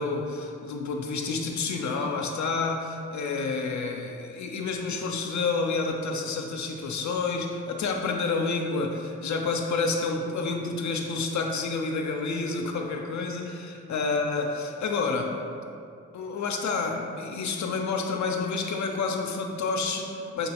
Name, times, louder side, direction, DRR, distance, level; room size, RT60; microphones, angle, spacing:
voice 1, 0.0-15.4 16.1-20.5, left 4 dB, 60° left, 2 dB, 0.5 m, -29 dB
5.7 x 2.9 x 2.9 m, 2.5 s
supercardioid pair, 40°, 33 cm